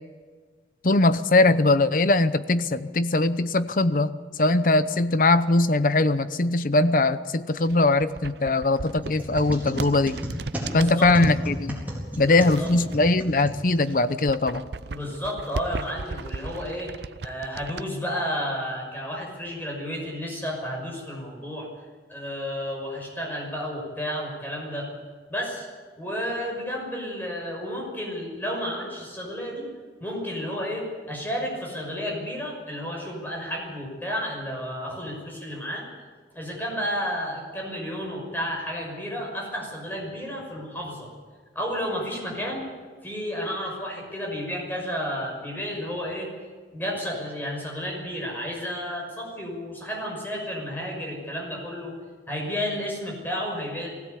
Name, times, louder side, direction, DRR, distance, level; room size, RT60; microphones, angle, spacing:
voice 1, 0.8-4.1 4.4-10.2 10.7-11.8 12.2-14.6, left 2 dB, 50° left, 13 dB, 0.8 m, -21 dB
sound 1, 7.6-11.4 12.1-13.4 13.8-17.9, right 4 dB, 70° right, 0.6 m, -36 dB
sound 2, 9.0-14.1, equal, 10° right, 4.3 m, -35 dB
voice 2, 10.6-11.1 12.2-12.7 14.9-16.9 17.2-21.7 22.1-24.9 25.3-25.7 26.0-29.7 30.0-35.9 36.3-41.1 41.5-42.7 43.0-46.3 46.7-51.9 52.3-53.9, equal, 10° left, -1 dB, 6.0 m, -32 dB
20.0 x 16.5 x 8.3 m, 1.5 s
head